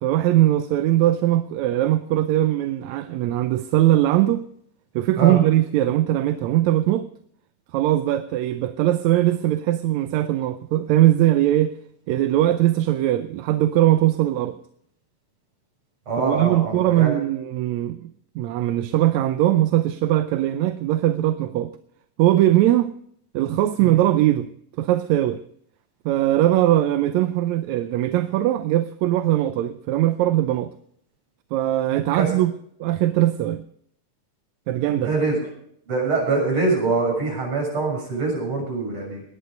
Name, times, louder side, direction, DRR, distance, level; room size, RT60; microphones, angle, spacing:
voice 1, 0.0-4.4 5.0-7.1 7.7-11.7 12.1-14.6 16.2-18.1 18.4-21.7 22.2-22.9 23.3-24.5 24.8-25.4 26.1-30.7 31.5-32.5 32.8-33.6 34.7-35.1, right 14 dB, 75° right, 1.9 m, -20 dB
voice 2, 16.1-17.2 23.8-24.0 32.1-32.4 35.0-35.4 35.9-39.2, right 3 dB, 45° right, 7.7 m, -24 dB
19.0 x 10.5 x 5.2 m
omnidirectional pair, 3.5 m